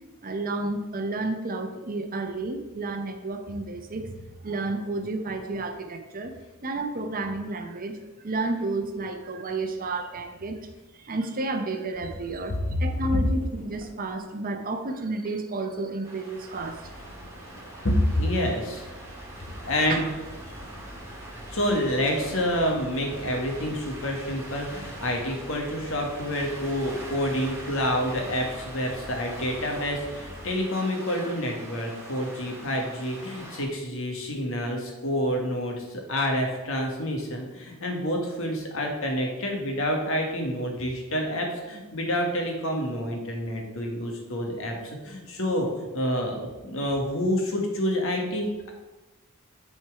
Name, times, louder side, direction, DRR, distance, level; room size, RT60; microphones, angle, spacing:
voice 1, 0.2-6.3 6.6-8.0 8.2-10.6 11.0-16.8 19.9-20.0, right 2 dB, 40° right, 6 dB, 0.7 m, -31 dB
sound 1, 11.9-14.1 16.1-30.5, equal, 10° left, 1.6 m, -46 dB
sound 2, 16.0-33.6, right 1 dB, 10° right, 2.0 m, -43 dB
voice 2, 17.8-18.9 19.6-20.1 21.3-48.7, equal, 65° left, 1 dB, 1.6 m, -28 dB
9.3 x 4.4 x 4.7 m, 1.2 s
head